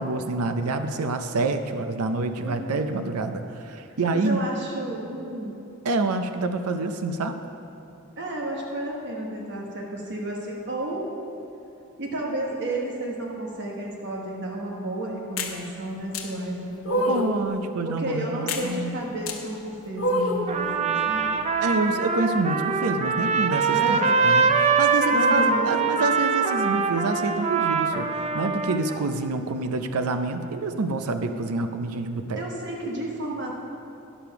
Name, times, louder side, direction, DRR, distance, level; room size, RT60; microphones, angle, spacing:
voice 1, 0.0-4.4 5.8-7.4 17.1-19.0 21.6-32.4, right 3 dB, 85° right, 7 dB, 0.6 m, -27 dB
voice 2, 2.3-2.7 4.1-5.6 8.2-11.1 12.0-17.2 17.9-21.3 23.7-24.2 25.1-25.7 28.9-29.1 32.4-33.5, right 1 dB, 55° right, -1 dB, 1.2 m, -32 dB
sound 1, 15.4-15.6 16.1-16.3 16.8-17.4 18.5-18.7 19.3-19.4 20.0-20.5, left 1 dB, 65° left, 1.1 m, -25 dB
Trumpet, 20.5-29.0, right 4 dB, 30° right, 0.4 m, -23 dB
11.0 x 6.8 x 5.8 m, 2.7 s
head